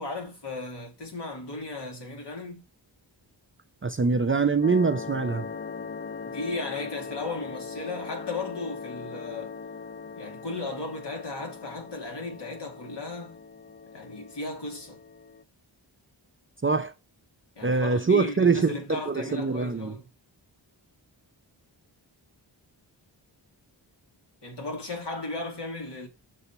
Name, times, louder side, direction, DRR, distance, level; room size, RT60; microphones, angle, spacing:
voice 1, 0.0-2.6 6.2-9.5 10.1-13.4 13.9-15.0 17.6-20.1 24.4-26.1, left 2 dB, 60° left, 2.2 m, -35 dB
voice 2, 3.8-5.5 16.6-16.9 17.6-20.0, right 4 dB, 25° right, 0.6 m, -24 dB
sound 1, 4.6-15.4, left 5 dB, 25° left, 0.4 m, -40 dB
6.9 x 2.8 x 5.5 m
cardioid pair, 45°, 48 cm